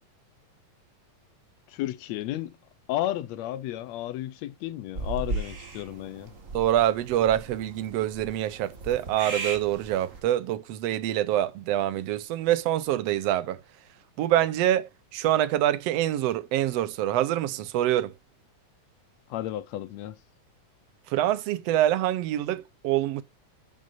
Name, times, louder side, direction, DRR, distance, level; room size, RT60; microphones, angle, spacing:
voice 1, 1.7-2.6 2.9-6.3 19.3-20.2, left 13 dB, 75° left, 1.8 m, -33 dB
sound 1, 4.9-10.2, right 3 dB, 30° right, 1.7 m, -37 dB
voice 2, 6.5-13.6 14.2-18.1 21.1-23.2, right 12 dB, 70° right, 1.8 m, -25 dB
11.0 x 7.4 x 2.6 m
omnidirectional pair, 3.3 m